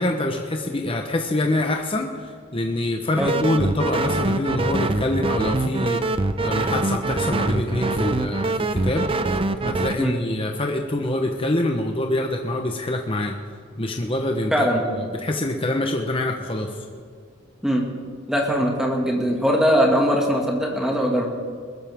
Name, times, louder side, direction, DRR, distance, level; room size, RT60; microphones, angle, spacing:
voice 1, 0.0-6.0 6.4-9.1 9.6-13.3 13.8-14.7 14.9-16.7, left 1 dB, 25° left, 3 dB, 0.9 m, -25 dB
sound 1, 3.2-9.9, right 2 dB, 25° right, 0.6 m, -24 dB
voice 2, 14.5-14.8 17.6-17.9 18.3-21.3, equal, 5° right, 0 dB, 2.0 m, -21 dB
21.0 x 13.0 x 3.5 m, 2.1 s
head